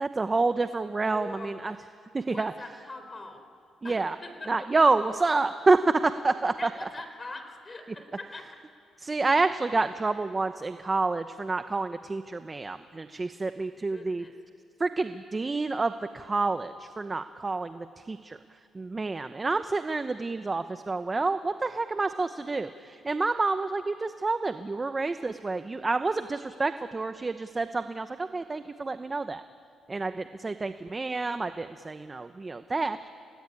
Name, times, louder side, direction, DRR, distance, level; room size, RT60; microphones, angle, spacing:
voice 1, 0.0-1.7 2.1-2.5 3.8-4.1 4.5-6.5 9.0-14.2 14.8-18.4 18.7-29.4 29.9-33.0, right 3 dB, 25° right, 10 dB, 0.9 m, -28 dB
voice 2, 1.1-1.6 2.3-3.4 3.8-4.7 6.6-8.5 9.7-9.8 13.6-14.3, left 2 dB, 25° left, 6 dB, 4.3 m, -43 dB
29.0 x 18.5 x 9.9 m, 2.3 s
cardioid pair, 90°, 0 cm